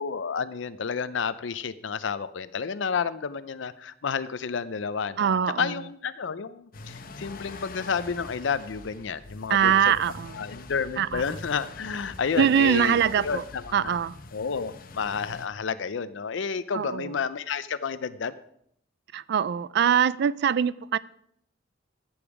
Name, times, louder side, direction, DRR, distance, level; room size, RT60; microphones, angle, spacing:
voice 1, 0.0-9.9 10.3-14.0 14.3-18.4, left 6 dB, 70° left, 14 dB, 0.5 m, -31 dB
voice 2, 5.2-5.7 9.5-10.4 11.0-11.2 12.4-13.4 13.7-14.2 16.7-17.1 19.1-21.0, right 8 dB, 60° right, 20 dB, 0.4 m, -23 dB
sound 1, 6.7-15.5, left 3 dB, 50° left, 0.8 m, -44 dB
13.5 x 7.1 x 4.8 m, 0.71 s
head